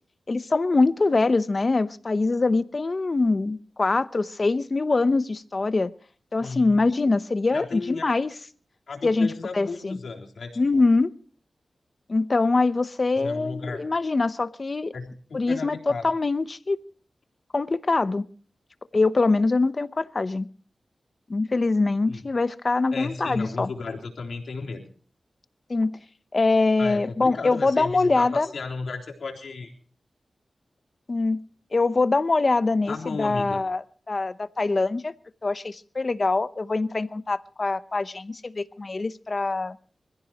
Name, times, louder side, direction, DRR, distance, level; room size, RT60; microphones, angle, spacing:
voice 1, 0.3-5.9 6.3-8.3 9.0-10.0 10.6-11.1 12.1-14.9 15.3-16.8 17.5-18.2 18.9-20.5 21.3-23.7 25.7-26.0 26.3-28.5 31.1-31.4 31.7-35.1 35.4-39.8, left 3 dB, 45° left, 0.8 m, -23 dB
voice 2, 6.4-6.8 7.5-8.1 8.9-10.8 13.2-13.8 14.9-16.0 22.1-22.2 22.9-24.8 26.8-29.7 32.9-33.6, left 4 dB, 85° left, 3.7 m, -34 dB
26.5 x 15.5 x 3.0 m
wide cardioid pair, 70°, 0 cm